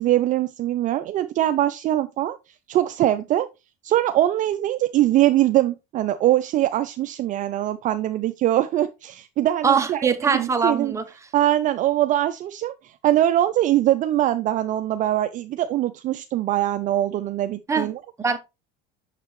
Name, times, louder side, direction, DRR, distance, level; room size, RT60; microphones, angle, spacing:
voice 1, 0.0-2.4 2.7-3.5 3.8-10.9 11.3-18.0, right 13 dB, 40° right, 0.4 m, -22 dB
voice 2, 9.6-11.1 17.7-17.9 18.2-18.4, right 5 dB, 15° right, 0.8 m, -22 dB
6.6 x 6.6 x 3.0 m
supercardioid pair, 130°, 21 cm